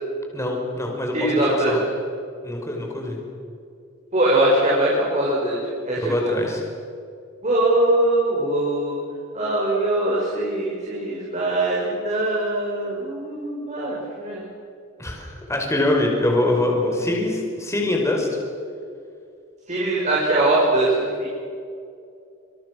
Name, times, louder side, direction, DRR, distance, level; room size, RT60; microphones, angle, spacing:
voice 1, 0.3-1.9 2.4-3.2 6.0-6.6 15.0-18.3, left 2 dB, 15° left, 0 dB, 5.1 m, -24 dB
voice 2, 1.1-1.7 4.1-5.6 5.9-6.3 7.4-9.0 9.3-14.5 19.7-21.3, right 1 dB, 35° right, -5 dB, 6.3 m, -22 dB
28.0 x 26.5 x 6.5 m, 2.4 s
head